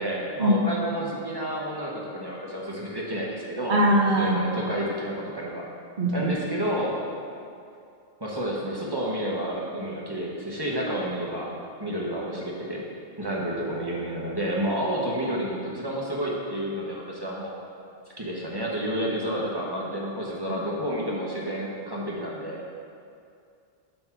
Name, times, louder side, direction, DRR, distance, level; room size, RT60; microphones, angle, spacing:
voice 1, 0.0-3.8 4.2-5.6 6.1-7.0 8.2-12.8 13.2-17.5 18.2-22.6, equal, 25° right, -4 dB, 1.1 m, -30 dB
voice 2, 3.7-4.4 6.0-6.3, right 1 dB, 50° right, 0 dB, 1.1 m, -21 dB
6.6 x 5.3 x 5.9 m, 2.4 s
omnidirectional pair, 1.1 m